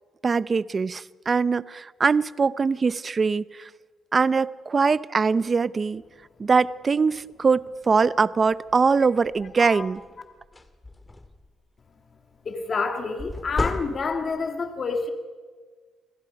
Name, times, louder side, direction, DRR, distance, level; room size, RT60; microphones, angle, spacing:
voice 1, 0.2-3.7 4.1-6.0 6.4-10.0, right 5 dB, 35° right, 17 dB, 0.7 m, -22 dB
sound 1, 9.2-9.5 10.0-10.1 10.4-11.5 13.2-14.4, left 2 dB, 20° left, 2.1 m, -32 dB
voice 2, 12.4-15.1, left 4 dB, 45° left, 5 dB, 2.4 m, -28 dB
29.5 x 21.5 x 5.4 m, 1.4 s
cardioid pair, 90°, 0 cm